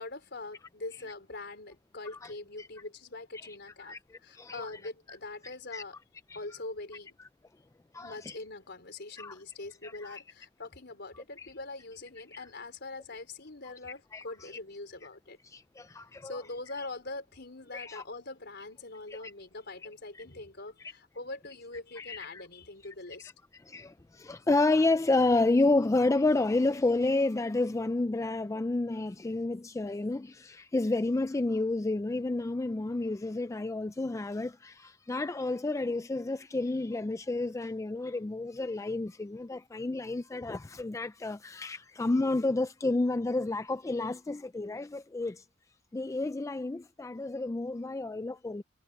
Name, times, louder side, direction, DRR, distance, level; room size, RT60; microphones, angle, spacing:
voice 1, 0.0-6.0 6.3-7.2 8.0-15.4 16.2-23.3, left 2 dB, 60° left, 4.4 m, -43 dB
voice 2, 3.8-4.7 5.7-5.8 6.3-6.4 7.9-8.4 9.2-9.3 9.8-10.2 11.4-11.5 12.3-12.5 14.1-14.5 15.4-16.4 17.7-18.0 19.2-19.3 20.1-20.2 22.0-22.4 23.7-45.4 45.9-48.6, left 2 dB, 15° left, 0.3 m, -30 dB
head